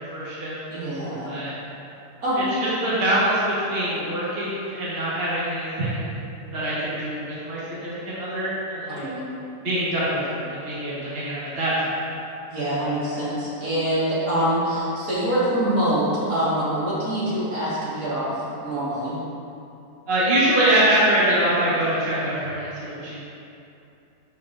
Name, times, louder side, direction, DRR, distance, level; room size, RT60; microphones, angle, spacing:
voice 1, 0.0-0.5 1.2-1.5 2.3-6.1 6.5-9.0 9.6-12.0 20.1-23.2, right 1 dB, 35° right, -10 dB, 1.6 m, -24 dB
voice 2, 0.7-1.4 2.2-2.4 9.0-9.2 12.5-19.2, right 1 dB, 55° right, -9 dB, 2.2 m, -25 dB
12.0 x 4.6 x 2.6 m, 2.8 s
omnidirectional pair, 1.8 m